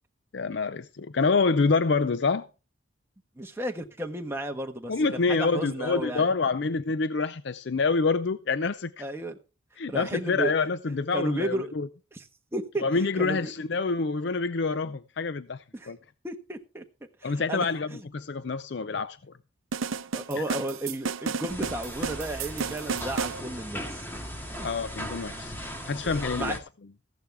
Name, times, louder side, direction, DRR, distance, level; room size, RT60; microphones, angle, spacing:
voice 1, 0.3-2.5 4.9-9.1 9.8-11.9 12.8-16.0 17.2-19.4 20.4-20.5 24.6-25.5 25.8-26.6, left 4 dB, 55° left, 0.5 m, -27 dB
voice 2, 3.4-6.2 9.0-9.4 9.9-10.5 11.1-11.7 12.1-12.2 12.5-12.8 13.2-13.5 15.7-15.9 16.2-16.8 17.2-17.7 17.9-18.0 20.1-24.1 24.6-24.7 26.4-26.6, right 1 dB, 10° right, 1.3 m, -33 dB
sound 1, 19.7-23.4, right 5 dB, 80° right, 0.6 m, -32 dB
sound 2, 21.5-26.6, equal, 10° left, 2.0 m, -38 dB
15.0 x 11.5 x 3.5 m
head